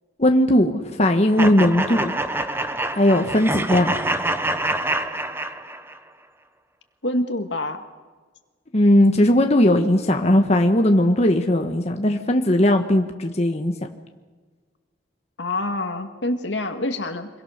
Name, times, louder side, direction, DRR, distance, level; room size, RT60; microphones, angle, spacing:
voice 1, 0.2-2.1 2.9-3.9 8.7-13.7, left 1 dB, 35° left, 4 dB, 1.3 m, -18 dB
sound 1, 1.4-6.0, right 1 dB, 15° right, 1.1 m, -26 dB
voice 2, 7.0-7.8 15.4-17.3, left 1 dB, 75° left, 6 dB, 2.1 m, -26 dB
26.0 x 22.0 x 6.7 m, 1.4 s
head